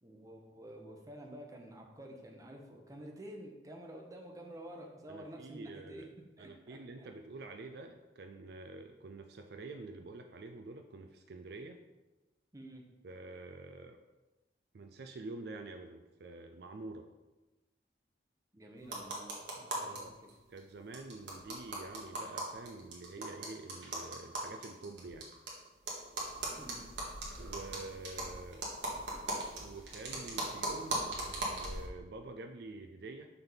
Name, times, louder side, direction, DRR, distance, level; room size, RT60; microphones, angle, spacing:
voice 1, 0.0-6.0 6.4-7.1 12.5-12.8 18.5-20.2 23.2-23.3 26.6-26.9, right 1 dB, 20° right, 1 dB, 0.8 m, -50 dB
voice 2, 5.1-6.1 6.4-11.8 13.0-14.0 14.7-17.1 19.8-20.1 20.5-25.3 27.4-28.7 29.6-33.3, right 2 dB, 60° right, 6 dB, 0.4 m, -47 dB
sound 1, 18.8-20.0 20.3-20.4 20.6-20.7 20.9-25.5 25.9-31.9, right 1 dB, 85° right, 1.6 m, -39 dB
5.8 x 3.5 x 5.6 m, 1.1 s
head